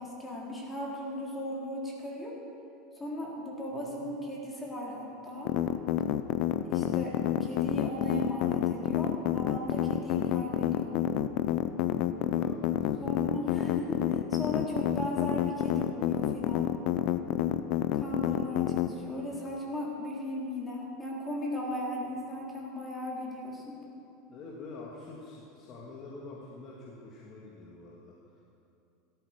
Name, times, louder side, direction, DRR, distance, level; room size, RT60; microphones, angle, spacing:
voice 1, 0.0-2.4 2.9-5.5 6.7-11.1 13.0-16.8 17.9-23.8, left 1 dB, 15° left, -3 dB, 3.7 m, -37 dB
voice 2, 3.7-4.1 12.3-13.1 24.3-28.2, left 3 dB, 40° left, -4 dB, 2.3 m, -46 dB
sound 1, 5.4-18.9, left 12 dB, 60° left, 0.7 m, -28 dB
17.5 x 13.5 x 5.2 m, 2.7 s
supercardioid pair, 130°, 0 cm